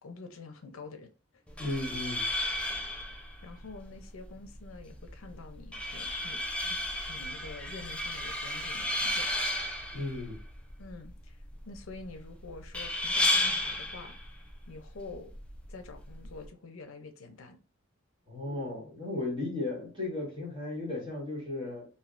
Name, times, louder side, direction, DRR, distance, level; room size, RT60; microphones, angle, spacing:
voice 1, 0.0-1.4 3.4-6.8 7.1-9.3 10.8-11.4 11.6-14.2 14.7-15.3 15.7-17.6, left 3 dB, 85° left, 0.6 m, -47 dB
sound 1, 1.5-16.5, left 1 dB, 5° left, 0.4 m, -34 dB
voice 2, 1.6-2.2 9.9-10.4 18.3-21.9, left 2 dB, 25° right, 1.7 m, -35 dB
3.3 x 2.7 x 2.5 m
head